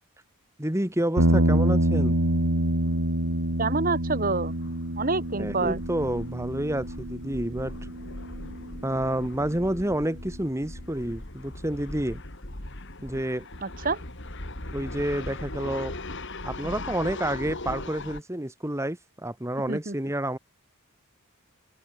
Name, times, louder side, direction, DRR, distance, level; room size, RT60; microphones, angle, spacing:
voice 1, 0.6-2.2 5.4-7.7 8.8-12.2 13.0-13.5 14.7-16.0 16.4-20.4, right 1 dB, 15° right, 1.9 m, -29 dB
sound 1, 1.2-9.5, right 1 dB, 80° right, 3.7 m, -27 dB
sound 2, 2.1-2.2 2.5-18.2, left 2 dB, 55° left, 4.0 m, -40 dB
voice 2, 3.6-4.5 5.0-5.8 13.6-14.0 19.7-19.9, right 3 dB, 40° right, 2.0 m, -27 dB
open air
head